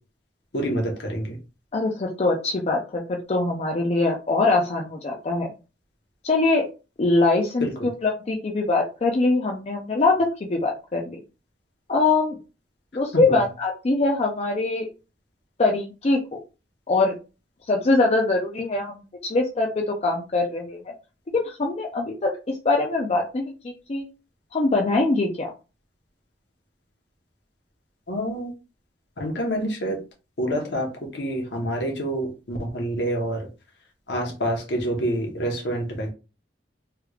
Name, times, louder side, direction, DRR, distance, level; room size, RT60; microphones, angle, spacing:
voice 1, 0.5-1.4 7.6-7.7 13.1-13.4 28.1-28.5 29.2-30.0 30.4-33.5 34.1-36.1, right 1 dB, 70° left, 2 dB, 1.0 m, -27 dB
voice 2, 1.7-5.5 6.2-6.7 7.0-10.2 10.5-11.2 11.9-12.4 12.9-14.9 15.6-16.4 16.9-17.1 17.7-20.9 21.3-24.0 24.5-25.5, left 3 dB, 35° left, 0 dB, 0.5 m, -23 dB
3.2 x 3.2 x 2.3 m, 0.31 s
head